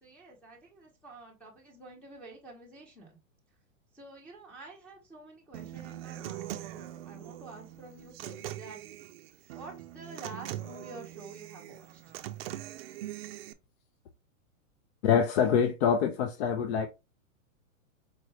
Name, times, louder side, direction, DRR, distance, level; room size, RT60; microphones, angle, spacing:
voice 1, 0.0-3.2 3.9-8.8 9.5-12.3, right 2 dB, 5° left, 0.9 m, -49 dB
Human voice / Acoustic guitar, 5.5-13.5, right 13 dB, 50° right, 0.5 m, -42 dB
voice 2, 15.0-16.9, left 7 dB, 50° left, 0.6 m, -25 dB
4.6 x 2.5 x 3.2 m
hypercardioid pair, 145°, 41 cm